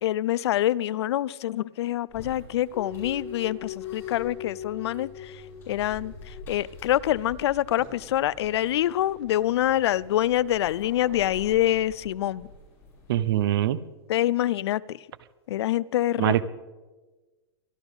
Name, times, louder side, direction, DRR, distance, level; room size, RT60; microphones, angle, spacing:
voice 1, 0.0-5.4 5.7-12.5 14.1-15.0 15.5-16.4, left 13 dB, 75° left, 22 dB, 0.4 m, -26 dB
sound 1, 2.1-13.5, left 2 dB, 15° left, 5.8 m, -47 dB
sound 2, 2.7-6.8, left 9 dB, 30° left, 3.2 m, -40 dB
voice 2, 13.1-13.8 16.2-16.4, right 13 dB, 60° right, 17 dB, 0.7 m, -23 dB
23.5 x 12.5 x 3.6 m, 1.2 s
supercardioid pair, 175°, 14 cm